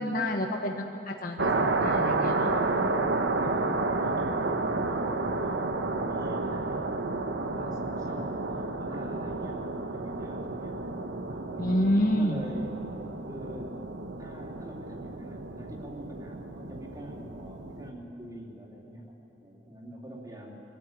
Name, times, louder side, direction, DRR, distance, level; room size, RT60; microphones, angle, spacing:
voice 1, 0.0-2.5 11.6-12.4, left 1 dB, 50° left, 1 dB, 1.3 m, -28 dB
sound 1, 1.4-17.9, right 3 dB, 80° right, 1.1 m, -31 dB
voice 2, 2.5-6.9 7.2-10.9 11.2-12.8 13.2-13.8 14.2-20.5, equal, 20° right, -2 dB, 3.2 m, -44 dB
24.0 x 14.0 x 8.9 m, 2.8 s
head